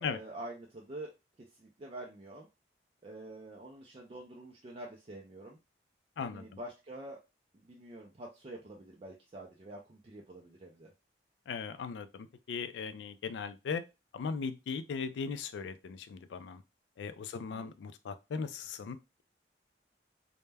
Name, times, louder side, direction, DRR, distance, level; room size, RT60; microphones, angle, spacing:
voice 1, 0.0-1.1 1.5-2.5 3.0-5.6 6.2-7.2 7.5-10.9 17.3-17.7, right 1 dB, 35° right, -1 dB, 0.4 m, -47 dB
voice 2, 6.2-6.5 11.5-13.8 14.1-16.6 17.0-19.2, left 5 dB, 85° left, 11 dB, 0.3 m, -38 dB
2.1 x 2.1 x 3.3 m, 0.26 s
head